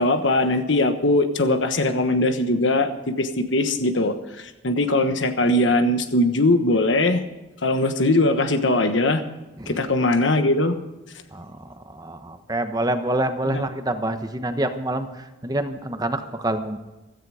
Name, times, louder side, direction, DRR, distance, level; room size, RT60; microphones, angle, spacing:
voice 1, 0.0-2.9 3.2-7.2 7.6-9.2 9.7-10.8 13.4-13.6, left 2 dB, 70° left, 8 dB, 1.2 m, -20 dB
voice 2, 11.3-16.8, right 1 dB, 20° right, 7 dB, 1.1 m, -27 dB
16.0 x 14.0 x 5.0 m, 1.1 s
head